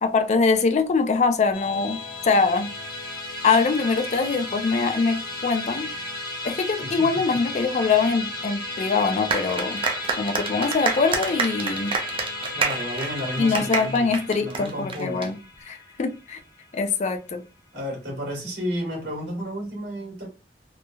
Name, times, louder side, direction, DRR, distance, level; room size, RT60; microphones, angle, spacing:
voice 1, 0.0-2.7 3.4-5.9 6.4-9.8 10.2-12.0 13.4-15.4 15.7-16.4 16.7-17.4, left 4 dB, 40° left, 0.4 m, -23 dB
Musical instrument, 1.5-17.0, left 2 dB, 25° left, 0.8 m, -34 dB
voice 2, 6.8-7.2 12.5-14.1 14.4-15.3 17.7-20.3, equal, 85° right, 1.4 m, -32 dB
sound 1, 9.3-15.3, right 4 dB, 30° right, 0.4 m, -28 dB
3.1 x 2.0 x 2.2 m
head